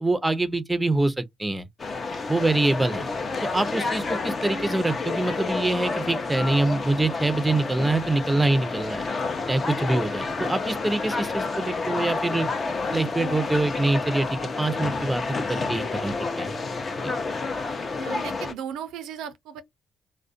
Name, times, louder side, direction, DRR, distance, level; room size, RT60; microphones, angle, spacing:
voice 1, 0.0-1.7 2.3-3.1 3.5-9.1 9.5-12.5 12.9-15.2 15.5-16.5 17.0-17.2, right 2 dB, 10° right, 0.5 m, -25 dB
sound 1, 1.8-18.5, left 3 dB, 40° left, 0.6 m, -29 dB
voice 2, 18.0-19.6, right 8 dB, 90° right, 0.4 m, -36 dB
2.4 x 2.1 x 2.4 m
cardioid pair, 90°, 0 cm